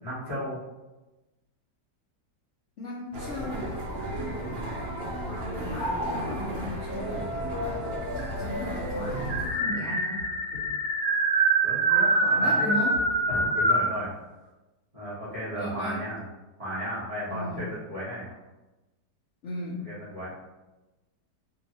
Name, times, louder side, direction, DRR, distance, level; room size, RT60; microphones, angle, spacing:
voice 1, 0.0-0.6 3.9-4.2 11.6-12.1 12.4-12.8 13.3-14.1 14.9-16.2 16.6-18.3 19.8-20.3, equal, 25° right, -11 dB, 0.9 m, -34 dB
voice 2, 2.8-3.8 5.6-7.2 8.1-10.2 12.2-13.0 15.6-16.0 17.3-17.7 19.4-19.8, left 1 dB, 60° left, -6 dB, 0.8 m, -36 dB
sound 1, 3.1-9.5, equal, 75° right, 0.5 m, -33 dB
sound 2, 3.8-5.3 5.8-6.4 7.4-7.5 7.8-7.9 8.2-13.9, right 2 dB, 50° right, 1.2 m, -25 dB
2.8 x 2.7 x 4.0 m, 1.1 s
omnidirectional pair, 1.8 m